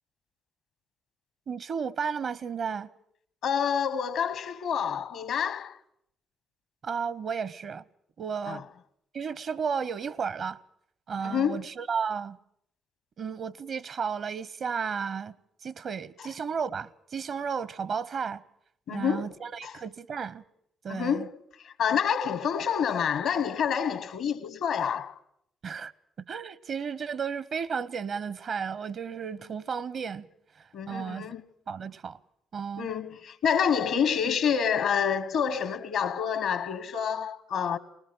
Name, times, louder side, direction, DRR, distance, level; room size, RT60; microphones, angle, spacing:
voice 1, 1.5-2.9 6.8-7.8 8.2-8.6 9.1-10.6 11.1-12.4 13.2-15.3 15.6-18.4 18.9-20.4 20.8-21.3 25.6-25.9 26.3-30.3 30.9-31.3 31.7-32.2 32.5-32.9, right 6 dB, 55° right, 0.8 m, -33 dB
voice 2, 3.4-5.8 8.5-8.6 11.2-11.7 18.9-19.3 19.6-19.8 20.9-21.4 21.6-25.1 30.7-31.4 32.8-37.8, left 7 dB, 70° left, 1.1 m, -28 dB
20.0 x 19.5 x 7.7 m
hypercardioid pair, 45°, 0 cm